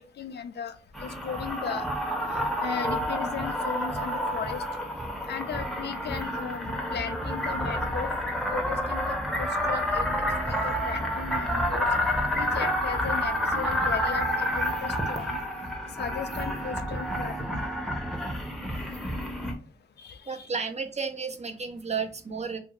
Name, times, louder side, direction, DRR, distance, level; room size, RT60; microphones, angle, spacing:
voice 1, 0.0-1.9 2.6-4.6 5.3-8.1 8.5-11.9 12.3-15.4 16.0-17.6 20.0-20.5, left 7 dB, 80° left, 9 dB, 0.4 m, -37 dB
sound 1, 0.9-19.5, equal, ahead, 0.7 m, -29 dB
voice 2, 20.3-22.6, right 5 dB, 40° right, 7 dB, 0.6 m, -32 dB
2.7 x 2.5 x 3.0 m, 0.35 s
cardioid pair, 65°, 17 cm